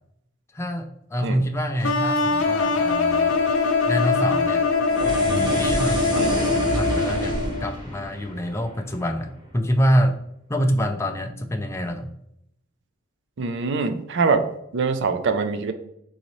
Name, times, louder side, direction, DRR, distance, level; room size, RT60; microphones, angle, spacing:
voice 1, 0.5-3.3 3.9-4.6 5.6-10.2 10.5-12.1, equal, 15° left, 4 dB, 0.4 m, -26 dB
sound 1, 1.8-7.7, left 3 dB, 85° left, 0.7 m, -22 dB
sound 2, 4.8-9.3, equal, 20° right, 1.0 m, -29 dB
voice 2, 13.4-14.5 14.7-15.7, right 4 dB, 60° right, 9 dB, 0.5 m, -23 dB
4.0 x 3.9 x 3.1 m, 0.75 s
head